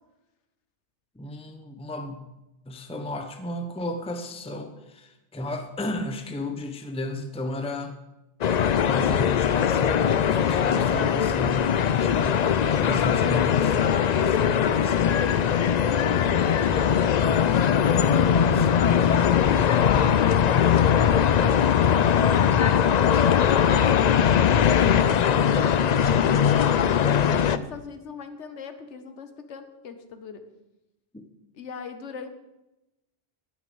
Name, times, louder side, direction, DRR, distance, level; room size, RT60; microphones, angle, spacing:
voice 1, 1.2-2.3 2.7-8.0 8.8-13.7 14.8-14.9 18.5-18.7, left 1 dB, 5° left, 6 dB, 0.8 m, -33 dB
sound 1, 8.4-27.6, left 8 dB, 55° left, 0.5 m, -21 dB
voice 2, 12.8-13.4 13.7-19.3 20.2-24.0 25.0-30.4 31.5-32.3, left 6 dB, 80° left, 8 dB, 1.3 m, -40 dB
9.4 x 9.4 x 7.0 m, 0.97 s
omnidirectional pair, 1.2 m